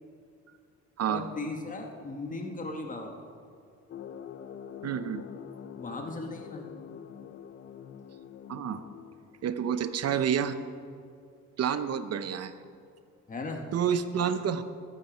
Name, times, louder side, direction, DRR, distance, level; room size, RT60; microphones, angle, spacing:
voice 1, 1.1-3.2 5.8-6.7 13.3-13.6, left 2 dB, 25° left, 2 dB, 1.4 m, -37 dB
sound 1, 3.9-9.6, left 9 dB, 45° left, 0.6 m, -45 dB
voice 2, 4.8-5.2 8.5-8.8 9.4-10.6 11.6-12.5 13.7-14.6, right 8 dB, 55° right, 11 dB, 0.8 m, -29 dB
13.0 x 11.0 x 4.4 m, 2.3 s
cardioid pair, 90°, 30 cm